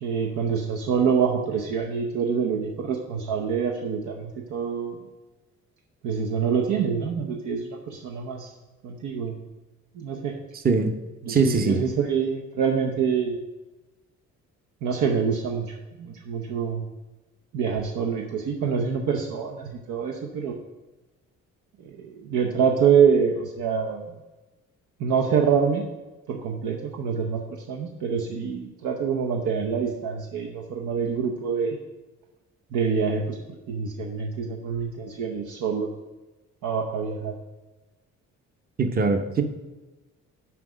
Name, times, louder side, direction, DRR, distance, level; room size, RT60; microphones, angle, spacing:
voice 1, 0.0-5.1 6.0-8.5 8.8-9.4 9.9-10.4 11.2-13.4 14.8-16.8 17.5-20.6 21.8-24.1 25.0-25.9 26.3-27.4 27.7-31.8 32.7-36.0 36.6-37.3, right 6 dB, 80° right, 1 dB, 0.8 m, -26 dB
voice 2, 11.3-11.8 38.8-39.4, right 4 dB, 30° right, 6 dB, 0.7 m, -21 dB
5.9 x 4.6 x 6.2 m, 1.1 s
cardioid pair, 90°, 30 cm